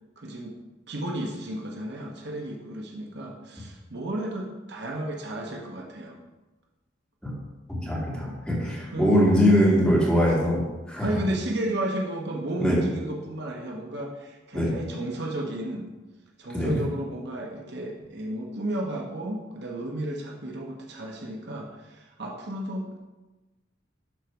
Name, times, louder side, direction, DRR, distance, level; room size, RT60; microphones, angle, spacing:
voice 1, 0.2-0.5 0.9-6.2 8.6-9.1 11.0-15.9 16.4-23.0, right 1 dB, 65° right, 0 dB, 1.1 m, -33 dB
voice 2, 7.7-10.6 10.9-11.1 12.6-12.8 14.5-14.7 16.5-16.8, equal, 5° left, -7 dB, 2.7 m, -22 dB
12.0 x 4.1 x 4.6 m, 1.1 s
head